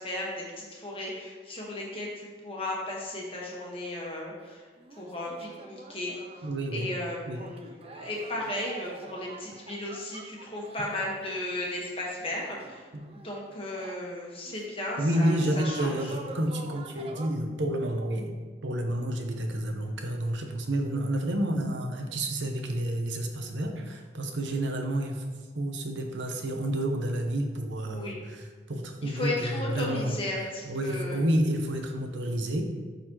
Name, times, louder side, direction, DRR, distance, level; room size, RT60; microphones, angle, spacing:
voice 1, 0.0-4.6 5.0-6.1 6.7-12.9 13.2-16.0 27.8-28.2 29.0-31.2, left 1 dB, 30° left, -3 dB, 1.4 m, -35 dB
sound 1, 4.4-4.5 4.8-14.0 14.4-14.8 15.1-17.3, right 2 dB, 30° right, 0.5 m, -46 dB
voice 2, 6.4-6.9 7.3-7.4 12.9-13.0 15.0-18.4 18.6-25.2 25.5-30.2 30.7-32.6, right 1 dB, 85° right, 4 dB, 0.9 m, -30 dB
11.0 x 4.1 x 3.0 m, 1.4 s
head